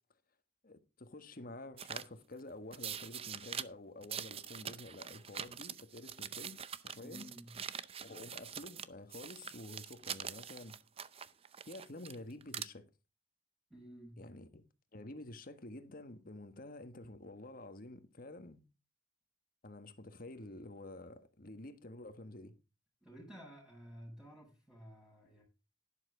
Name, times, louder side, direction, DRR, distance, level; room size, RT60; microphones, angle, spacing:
voice 1, 0.6-7.3 8.0-10.8 11.7-12.9 14.2-14.6 14.9-18.6 19.6-22.5, left 2 dB, 50° left, 1.5 m, -49 dB
sound 1, 1.8-2.1 2.7-3.6 4.0-8.9 9.1-12.1 12.4-12.6, right 8 dB, 30° right, 0.6 m, -44 dB
voice 2, 6.9-7.6 13.7-14.2 23.0-25.4, equal, ahead, 6.5 m, -53 dB
11.5 x 11.0 x 3.8 m
head